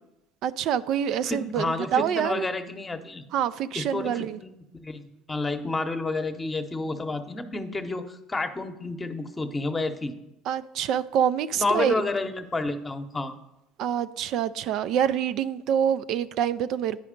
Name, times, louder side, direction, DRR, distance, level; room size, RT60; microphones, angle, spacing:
voice 1, 0.4-2.5 3.3-4.4 10.5-11.9 13.8-17.0, right 9 dB, 65° right, 0.3 m, -26 dB
voice 2, 1.2-3.2 3.7-10.1 11.6-13.3, left 3 dB, 20° left, 0.8 m, -30 dB
9.5 x 4.9 x 5.1 m
hypercardioid pair, 80°, 0 cm